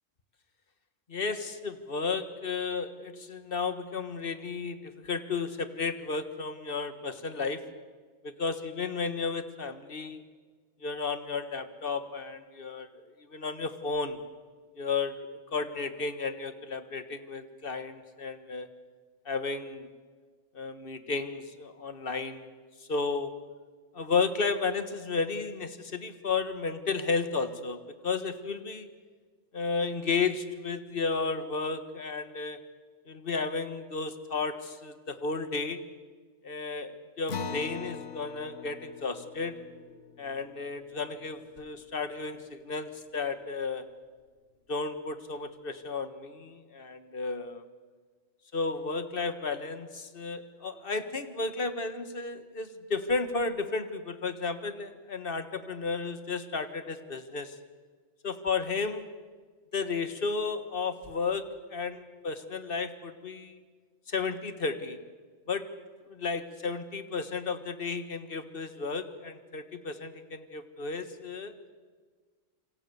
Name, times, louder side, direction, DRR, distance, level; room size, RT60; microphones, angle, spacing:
voice 1, 1.1-7.6 8.2-10.2 10.8-12.9 13.2-14.2 14.8-18.7 19.3-19.9 20.5-22.5 22.8-23.3 23.9-28.9 29.5-32.6 33.1-35.8 36.4-39.6 40.2-43.9 44.7-47.7 48.5-57.6 58.2-59.1 59.7-63.6 64.1-65.0 65.5-65.7 66.1-71.5, left 4 dB, 45° left, 10 dB, 1.7 m, -33 dB
Acoustic guitar, 37.3-42.2, left 6 dB, 65° left, 1.7 m, -42 dB
27.0 x 26.0 x 7.0 m, 1.5 s
omnidirectional pair, 1.3 m